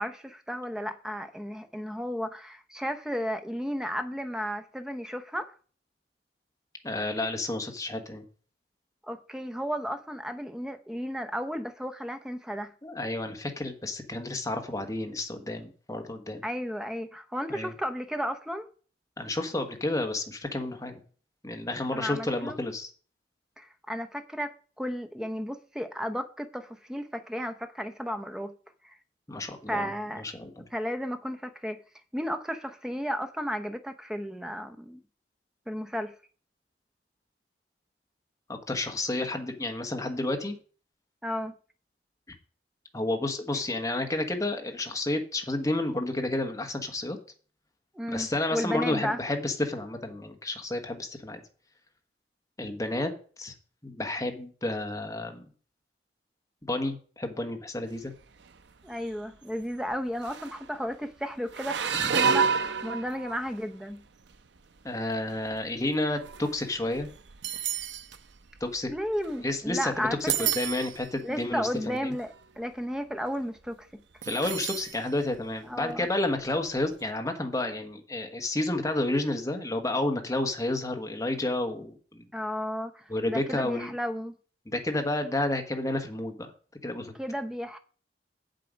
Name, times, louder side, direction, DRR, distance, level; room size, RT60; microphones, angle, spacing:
voice 1, 0.0-5.5 9.1-12.7 16.4-18.7 21.9-22.6 23.6-28.5 28.8-29.0 29.7-30.2 30.7-31.8 32.1-35.0 35.7-36.1 41.2-41.5 47.9-49.2 58.8-64.0 68.9-70.5 71.2-73.9 75.7-76.1 82.3-84.3 87.2-87.8, equal, 5° right, 0.7 m, -33 dB
voice 2, 6.8-8.2 12.8-16.4 17.5-17.7 19.2-21.0 21.4-22.9 29.3-30.7 38.5-40.6 42.9-47.2 48.1-51.4 52.6-53.1 53.4-53.5 53.8-55.5 56.6-58.1 61.9-62.3 64.8-67.1 68.6-68.9 69.4-72.1 74.2-82.3 83.1-83.9 84.7-86.5 86.8-87.1, left 2 dB, 20° left, 1.3 m, -31 dB
sound 1, 58.2-58.6 58.9-59.2 59.9-60.0 60.2-60.7 61.5-63.6 64.3-64.6 65.3-69.7 70.1-71.1 71.7-71.8 72.1-72.4 74.2-75.0 75.3-75.4 76.8-76.9, right 7 dB, 85° right, 0.6 m, -31 dB
7.8 x 7.6 x 5.1 m
head